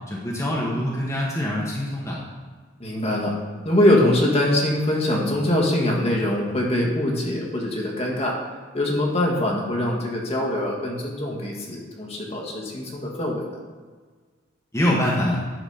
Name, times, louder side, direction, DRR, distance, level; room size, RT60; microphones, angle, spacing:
voice 1, 0.1-2.2 14.7-15.4, left 1 dB, 15° left, -5 dB, 1.2 m, -24 dB
voice 2, 2.8-3.4 3.6-8.4 8.7-13.6, left 1 dB, 30° left, -1 dB, 1.4 m, -23 dB
10.0 x 4.0 x 5.6 m, 1.5 s
head